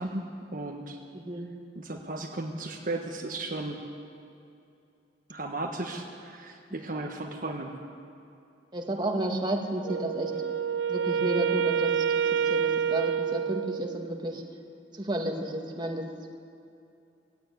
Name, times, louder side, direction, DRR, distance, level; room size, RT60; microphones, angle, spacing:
voice 1, 0.0-1.0 1.7-3.8 5.3-7.7, right 2 dB, 50° right, 1 dB, 1.4 m, -35 dB
voice 2, 1.1-1.5 8.7-10.5 10.9-12.0 12.3-14.4 14.9-16.0, right 1 dB, 25° right, 1 dB, 2.0 m, -32 dB
Wind instrument woodwind instrument, 9.8-14.2, right 7 dB, 85° right, 0.7 m, -28 dB
18.5 x 17.0 x 9.4 m, 2.6 s
head